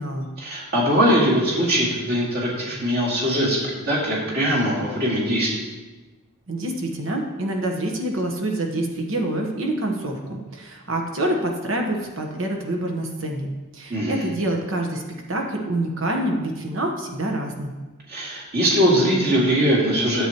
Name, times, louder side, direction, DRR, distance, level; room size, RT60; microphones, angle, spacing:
voice 1, 0.4-3.6 3.8-5.5 13.9-14.3 18.1-20.3, equal, 45° right, -6 dB, 2.4 m, -21 dB
voice 2, 6.5-15.0 15.3-17.7, right 1 dB, 65° right, 2 dB, 1.2 m, -26 dB
10.5 x 7.9 x 3.0 m, 1.2 s
head